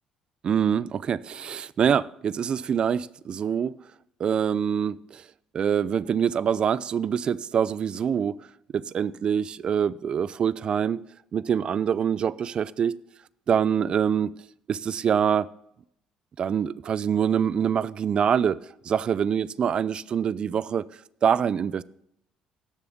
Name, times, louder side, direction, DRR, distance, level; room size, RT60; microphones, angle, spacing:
voice 1, 0.4-3.8 4.2-5.2 5.5-8.4 8.7-11.0 11.3-13.0 13.5-14.3 14.7-15.5 16.4-18.6 18.8-20.9 21.2-21.8, right 8 dB, 50° right, 0.4 m, -25 dB
17.0 x 6.9 x 3.6 m
supercardioid pair, 75°, 2 cm